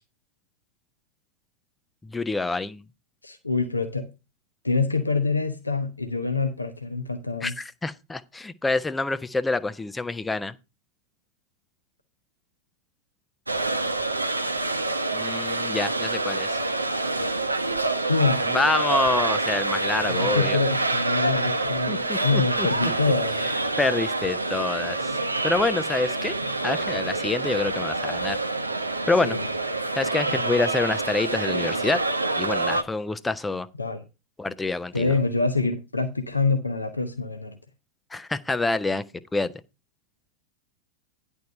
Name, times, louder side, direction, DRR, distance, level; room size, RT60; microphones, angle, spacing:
voice 1, 2.0-2.8 7.4-10.5 15.1-16.6 18.5-20.6 21.9-22.9 23.8-25.2 25.4-26.3 26.6-28.4 29.1-29.4 29.9-32.0 32.4-33.7 34.4-35.1 38.1-39.0 39.3-39.5, left 3 dB, 10° left, 0.7 m, -27 dB
voice 2, 3.2-4.1 4.6-7.5 18.1-18.5 20.1-23.5 29.2-29.4 30.3-30.5 33.8-34.0 34.9-37.5, left 3 dB, 80° left, 1.0 m, -26 dB
sound 1, 13.5-32.8, right 2 dB, 85° right, 0.8 m, -27 dB
10.5 x 4.6 x 6.5 m
figure-of-eight pair, 90°, 0 cm